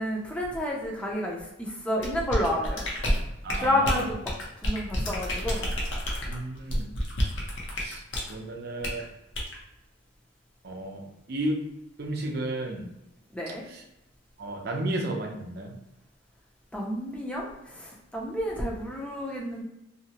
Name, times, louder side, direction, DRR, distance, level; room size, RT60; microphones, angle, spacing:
voice 1, 0.0-2.8 3.6-4.2 4.6-5.7 13.3-13.6 16.7-17.5 17.7-19.6, left 1 dB, 5° left, -2 dB, 0.5 m, -30 dB
sound 1, 2.0-8.3 8.8-9.0 9.3-9.6, equal, 75° left, 0.7 m, -29 dB
voice 2, 3.4-4.1 6.2-6.9 7.8-8.0 8.3-9.0 10.6-11.0 11.3-11.6 12.0-12.8 13.7-13.8 14.4-15.7, right 1 dB, 60° right, 1 dB, 0.5 m, -33 dB
2.7 x 2.0 x 2.8 m, 0.89 s
head